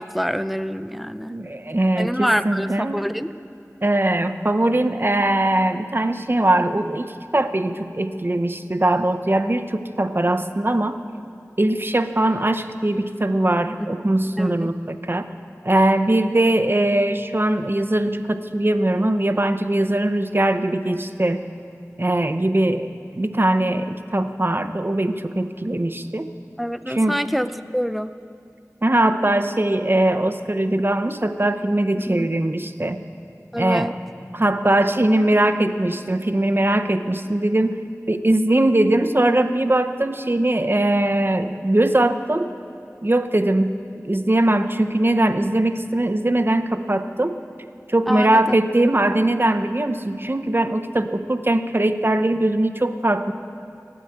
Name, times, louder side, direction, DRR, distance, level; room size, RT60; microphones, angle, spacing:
voice 1, 0.0-1.3 2.0-3.3 14.4-14.7 26.6-27.5 27.7-28.1 32.0-32.3 33.5-33.9 48.1-48.6, equal, ahead, 12 dB, 0.5 m, -26 dB
voice 2, 1.3-3.0 3.8-11.0 11.6-15.3 15.6-21.4 22.0-22.9 23.1-26.3 26.9-27.2 28.8-33.0 33.6-33.9 34.3-37.8 38.1-42.5 43.0-43.7 44.0-47.4 47.9-53.3, right 1 dB, 40° right, 9 dB, 0.7 m, -21 dB
17.0 x 8.7 x 8.1 m, 2.6 s
wide cardioid pair, 45°, 6 cm